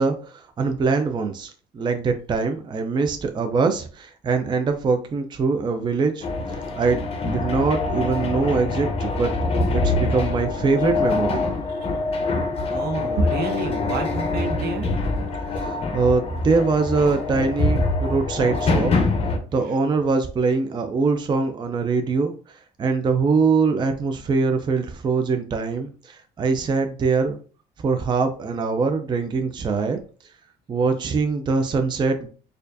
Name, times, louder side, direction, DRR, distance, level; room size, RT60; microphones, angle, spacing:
voice 1, 0.0-6.3 6.5-9.3 9.7-11.5 15.5-18.9 19.5-27.4 27.8-30.0 30.7-32.3, right 4 dB, 25° right, 6 dB, 0.4 m, -23 dB
sound 1, 6.2-19.4, left 3 dB, 35° left, 0.8 m, -25 dB
voice 2, 12.7-14.9, right 2 dB, 70° right, 4 dB, 0.9 m, -26 dB
4.4 x 2.5 x 2.6 m, 0.39 s
cardioid pair, 110°, 17 cm